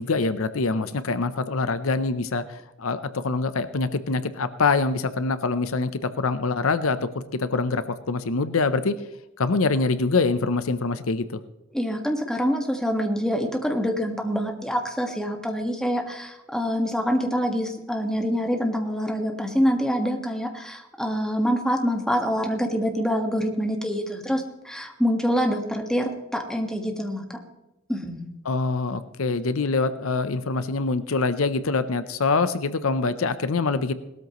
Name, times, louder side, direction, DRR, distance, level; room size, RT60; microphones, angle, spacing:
voice 1, 0.0-2.4 2.8-9.0 9.4-11.4 28.4-33.9, left 3 dB, 75° left, 12 dB, 0.7 m, -24 dB
voice 2, 11.7-27.2 27.9-28.3, equal, 5° left, 3 dB, 1.6 m, -26 dB
19.0 x 13.0 x 3.1 m, 0.96 s
head